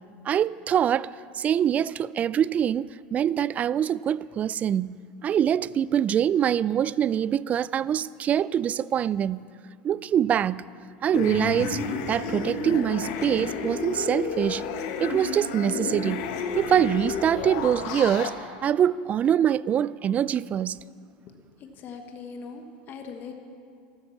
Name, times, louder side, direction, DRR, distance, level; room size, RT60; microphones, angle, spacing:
voice 1, 0.3-9.5 9.8-10.7 11.0-11.8 12.1-14.6 15.0-16.3 16.6-18.3 18.6-20.8, right 9 dB, 30° right, 0.3 m, -24 dB
sound 1, 11.1-18.3, left 5 dB, 70° left, 1.5 m, -31 dB
voice 2, 21.6-23.4, left 5 dB, 40° left, 1.4 m, -40 dB
13.5 x 12.0 x 7.2 m
supercardioid pair, 110°, 5 cm